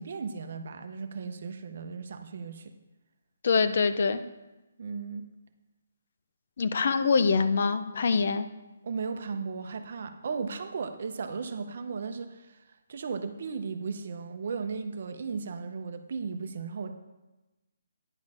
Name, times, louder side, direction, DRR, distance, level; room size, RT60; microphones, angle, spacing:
voice 1, 0.0-2.7 4.8-5.3 8.8-16.9, right 5 dB, 45° right, 8 dB, 0.7 m, -36 dB
voice 2, 3.4-4.2 6.6-8.5, left 5 dB, 50° left, 11 dB, 0.5 m, -24 dB
9.8 x 6.4 x 4.9 m, 1.1 s
hypercardioid pair, 175°, 0 cm